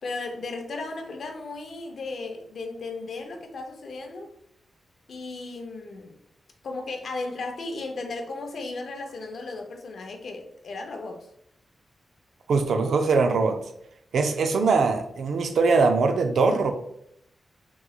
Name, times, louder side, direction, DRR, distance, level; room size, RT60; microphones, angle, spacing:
voice 1, 0.0-4.3 5.1-6.1 6.6-11.3, left 3 dB, 65° left, 4 dB, 0.5 m, -35 dB
voice 2, 12.5-13.6 14.1-16.7, right 4 dB, 90° right, 6 dB, 0.4 m, -22 dB
3.8 x 3.0 x 2.3 m, 0.73 s
wide cardioid pair, 150°, 0 cm